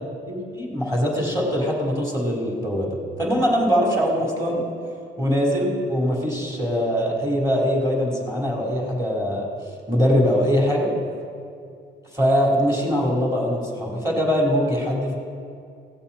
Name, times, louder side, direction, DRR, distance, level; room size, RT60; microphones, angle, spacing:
voice 1, 0.3-4.6 5.2-9.5 9.9-10.9 12.1-15.2, equal, 15° right, -3 dB, 4.0 m, -22 dB
19.0 x 16.5 x 4.4 m, 2.4 s
cardioid pair, 90°, 20 cm